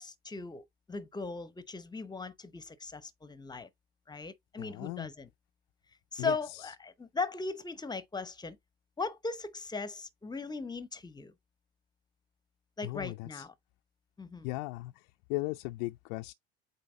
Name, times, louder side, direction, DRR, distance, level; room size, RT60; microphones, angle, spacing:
voice 1, 0.0-3.7 4.1-5.3 6.1-8.6 9.0-11.3 12.8-13.5 14.2-14.5, left 4 dB, 15° left, 0.8 m, -38 dB
voice 2, 4.6-5.1 6.2-6.7 12.8-13.5 14.4-16.3, left 21 dB, 55° left, 0.4 m, -38 dB
8.4 x 2.9 x 4.0 m
hypercardioid pair, 75°, 31 cm